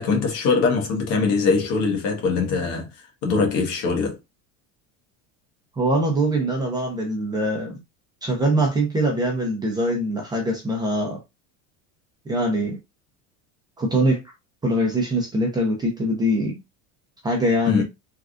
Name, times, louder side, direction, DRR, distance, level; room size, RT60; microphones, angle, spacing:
voice 1, 0.0-4.2 17.7-17.8, left 4 dB, 65° left, 1.3 m, -22 dB
voice 2, 5.8-7.8 8.2-11.2 12.3-12.8 13.8-14.2 14.6-16.6 17.2-17.8, right 1 dB, 10° right, 0.6 m, -23 dB
3.4 x 2.3 x 2.4 m
cardioid pair, 165°, 39 cm